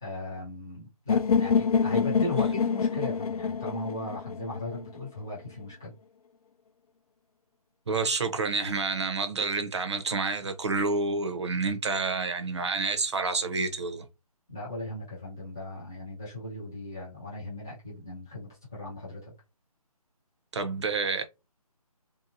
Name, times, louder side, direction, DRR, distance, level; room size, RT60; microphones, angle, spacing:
voice 1, 0.0-5.9 14.5-19.3, left 1 dB, 5° left, 0.4 m, -37 dB
sound 1, 1.1-5.0, left 6 dB, 70° left, 0.5 m, -26 dB
voice 2, 7.9-14.0 20.5-21.2, right 4 dB, 45° right, 0.7 m, -29 dB
3.5 x 2.8 x 2.6 m
hypercardioid pair, 170°, 20 cm